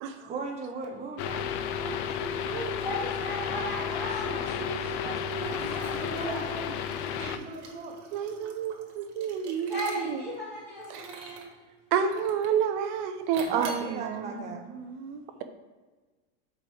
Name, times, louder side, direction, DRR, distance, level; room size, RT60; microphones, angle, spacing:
voice 1, 0.2-2.8 4.2-5.7 6.0-6.8 7.4-8.2 13.5-14.6, right 3 dB, 20° right, 2 dB, 0.8 m, -38 dB
sound 1, 1.2-7.4, left 7 dB, 50° left, 0.4 m, -32 dB
voice 2, 2.8-4.6 5.7-6.5 9.7-11.4, equal, ahead, -13 dB, 1.7 m, -36 dB
Liquid, 5.3-10.3 10.8-11.5 12.1-12.6 13.3-13.9, right 3 dB, 85° right, 1.4 m, -44 dB
voice 3, 8.1-10.2 10.9-11.0 11.9-15.4, right 7 dB, 50° right, 8 dB, 0.7 m, -30 dB
5.1 x 4.5 x 6.1 m, 1.3 s
supercardioid pair, 160°, 34 cm